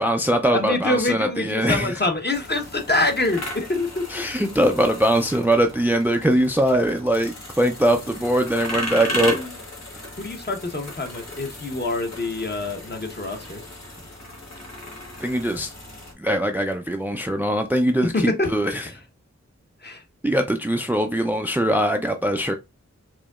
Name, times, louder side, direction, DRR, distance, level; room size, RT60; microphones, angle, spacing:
voice 1, 0.0-2.1 4.1-9.4 15.2-15.7 16.2-18.9 20.2-22.5, right 1 dB, 5° right, 0.4 m, -22 dB
voice 2, 0.5-4.0 9.2-9.5 10.2-13.6 18.0-18.5 19.8-20.0, left 2 dB, 35° left, 1.0 m, -25 dB
sound 1, 2.3-16.1, left 1 dB, 65° left, 1.4 m, -36 dB
4.9 x 2.8 x 2.3 m
wide cardioid pair, 65°, 29 cm